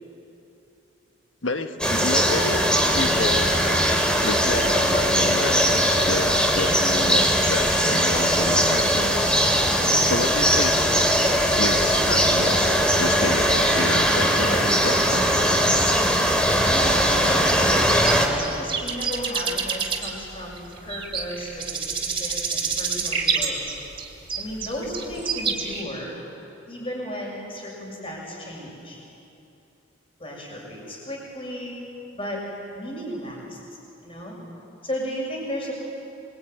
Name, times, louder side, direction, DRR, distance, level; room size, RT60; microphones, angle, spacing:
voice 1, 1.4-2.6 2.9-3.6 4.2-9.5 10.0-10.8 11.6-15.5, left 2 dB, 75° left, 7 dB, 1.5 m, -30 dB
sound 1, 1.8-18.3, equal, 5° left, 3.2 m, -20 dB
voice 2, 16.6-17.8 18.5-23.6 24.4-26.1 26.7-29.0 30.2-31.7 32.1-32.4 32.7-33.6 34.0-34.4 34.8-35.7, equal, 30° left, -2 dB, 6.8 m, -34 dB
sound 2, 18.0-25.8, right 6 dB, 30° right, 3.4 m, -28 dB
26.5 x 23.0 x 9.4 m, 2.8 s
head